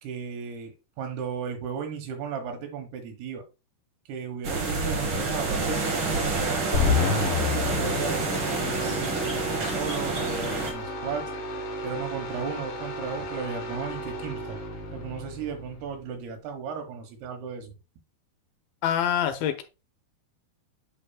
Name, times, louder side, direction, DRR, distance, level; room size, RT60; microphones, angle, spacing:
voice 1, 0.0-0.7 1.0-3.4 4.1-11.3 11.8-14.6 14.9-17.7, right 6 dB, 90° right, 4 dB, 3.3 m, -35 dB
sound 1, 4.4-10.7, right 3 dB, 60° right, 1.3 m, -28 dB
sound 2, 6.7-16.1, left 4 dB, 55° left, 1.8 m, -31 dB
voice 2, 18.8-19.6, left 10 dB, 80° left, 7 dB, 2.5 m, -25 dB
8.3 x 5.6 x 2.3 m, 0.28 s
omnidirectional pair, 4.4 m